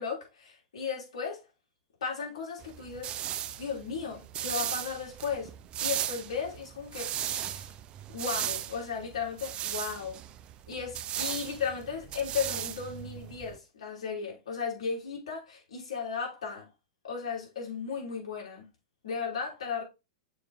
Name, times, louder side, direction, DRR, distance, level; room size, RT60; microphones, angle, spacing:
voice 1, 0.0-1.4 2.0-3.1 3.6-5.5 5.8-7.7 8.1-10.2 10.7-16.6 17.0-18.7 19.0-19.8, left 6 dB, 80° left, 3.8 m, -35 dB
sound 1, 2.6-13.6, right 11 dB, 35° right, 0.5 m, -37 dB
6.9 x 4.4 x 3.6 m
hypercardioid pair, 115°, 3 cm